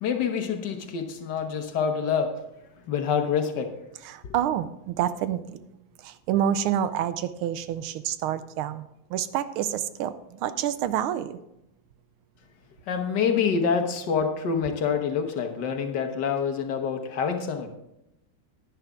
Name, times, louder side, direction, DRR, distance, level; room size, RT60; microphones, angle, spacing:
voice 1, 0.0-2.3 2.9-3.7 12.9-17.7, left 6 dB, 60° left, 5 dB, 1.5 m, -26 dB
voice 2, 4.0-5.6 6.0-8.8 9.1-11.4, right 10 dB, 85° right, 13 dB, 1.5 m, -28 dB
10.5 x 10.5 x 3.6 m, 0.86 s
omnidirectional pair, 2.3 m